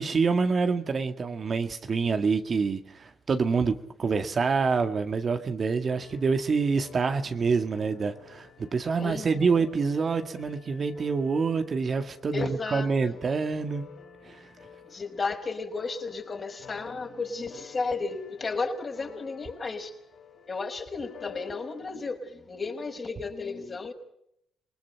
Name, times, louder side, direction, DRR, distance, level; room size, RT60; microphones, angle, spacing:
voice 1, 0.0-13.9 14.2-14.4, right 5 dB, 45° right, 2.0 m, -26 dB
sound 1, 5.9-21.8, left 7 dB, 60° left, 4.8 m, -51 dB
voice 2, 9.0-9.7 12.3-13.2 14.8-19.9 20.5-23.9, left 4 dB, 40° left, 5.5 m, -33 dB
28.0 x 20.0 x 5.9 m
supercardioid pair, 65°, 0 cm